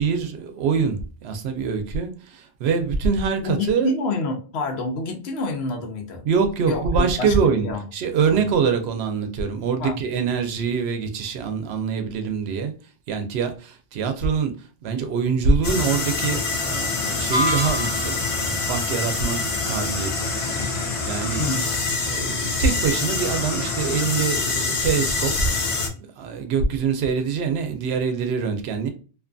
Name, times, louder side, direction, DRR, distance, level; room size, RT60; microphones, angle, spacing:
voice 1, 0.0-3.9 6.2-7.7 7.9-12.7 13.1-14.5 14.8-20.7 21.0-21.4 22.0-25.5 25.9-28.9, right 5 dB, 75° right, 0.8 m, -24 dB
voice 2, 3.4-6.3 6.7-7.3 7.6-7.8 8.3-8.5 9.8-10.0 21.4-21.7, left 2 dB, 80° left, 0.9 m, -27 dB
sound 1, 15.6-25.9, left 4 dB, 45° left, 0.4 m, -25 dB
sound 2, 17.3-18.3, left 1 dB, 55° right, 0.5 m, -25 dB
2.5 x 2.5 x 2.2 m
omnidirectional pair, 1.1 m